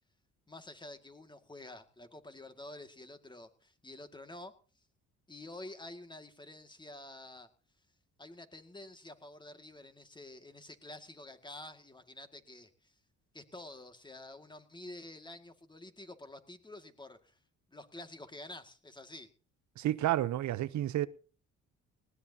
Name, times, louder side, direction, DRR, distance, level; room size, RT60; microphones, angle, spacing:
voice 1, 0.5-4.5 5.3-7.5 8.2-12.9 13.3-17.4 17.7-19.3, left 2 dB, 15° left, 2.1 m, -49 dB
voice 2, 19.8-21.1, right 13 dB, 70° right, 0.8 m, -30 dB
19.5 x 18.0 x 2.8 m
cardioid pair, 90°, 30 cm